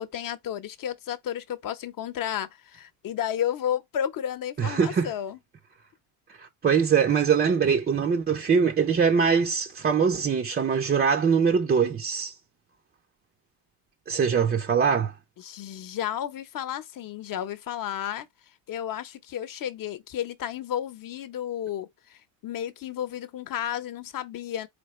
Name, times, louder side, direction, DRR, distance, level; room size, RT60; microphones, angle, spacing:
voice 1, 0.0-5.4 15.4-18.3 18.7-24.7, left 10 dB, 45° left, 0.8 m, -32 dB
voice 2, 4.6-5.1 6.4-12.3 14.1-15.1, right 6 dB, 20° right, 0.4 m, -23 dB
4.3 x 3.3 x 3.1 m
cardioid pair, 100°, 47 cm